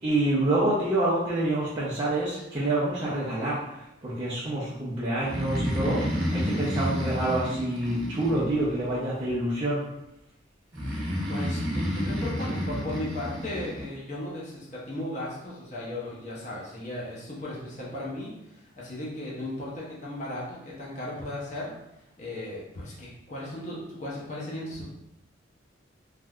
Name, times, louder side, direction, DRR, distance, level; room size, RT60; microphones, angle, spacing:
voice 1, 0.0-3.6 4.0-9.8, right 1 dB, 25° right, -10 dB, 0.6 m, -27 dB
Breathing, 5.2-8.9 10.7-13.8, equal, 85° right, 1.0 m, -30 dB
voice 2, 11.3-24.9, left 1 dB, 40° left, -6 dB, 0.7 m, -36 dB
3.3 x 2.6 x 2.3 m, 0.85 s
head